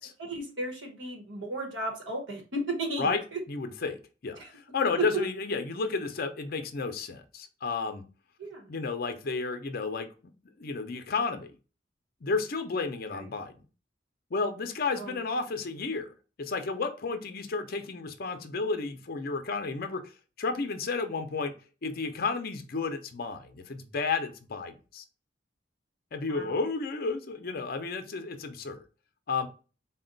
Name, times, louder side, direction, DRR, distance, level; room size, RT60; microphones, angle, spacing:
voice 1, 0.2-3.4 4.4-4.5 5.0-5.1 8.4-8.7 13.1-13.3 15.0-15.2 26.3-26.6, right 2 dB, 90° right, 2 dB, 1.1 m, -35 dB
voice 2, 3.5-4.0 4.2-8.0 8.7-10.1 10.6-11.5 12.2-13.5 14.3-20.0 20.4-21.5 21.8-25.0 26.1-28.8 29.3-29.5, left 4 dB, 55° left, 7 dB, 0.5 m, -32 dB
4.0 x 2.2 x 3.8 m, 0.34 s
head